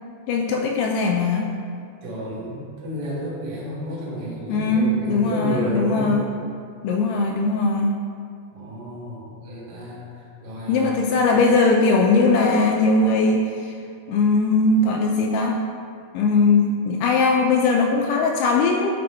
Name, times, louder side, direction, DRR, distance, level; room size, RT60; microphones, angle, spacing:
voice 1, 0.3-1.6 4.5-6.3 6.8-8.0 10.7-13.8 14.1-15.6 16.1-18.9, left 3 dB, 85° left, 1 dB, 2.3 m, -20 dB
voice 2, 2.0-6.2 8.5-11.1, equal, 50° right, -7 dB, 2.1 m, -31 dB
9.4 x 5.0 x 3.0 m, 2.3 s
omnidirectional pair, 5.0 m